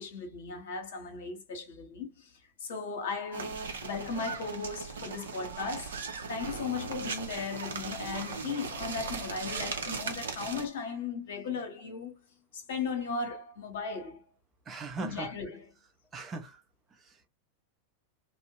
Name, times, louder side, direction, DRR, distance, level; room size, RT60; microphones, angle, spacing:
voice 1, 0.0-12.2 12.5-14.2 15.0-15.7, left 5 dB, 55° left, 0.9 m, -37 dB
sound 1, 3.3-10.7, right 5 dB, 65° right, 0.6 m, -38 dB
voice 2, 14.7-15.3 16.1-16.6 16.9-17.3, right 3 dB, 20° right, 0.6 m, -39 dB
2.5 x 2.1 x 2.8 m
figure-of-eight pair, 90°, 0 cm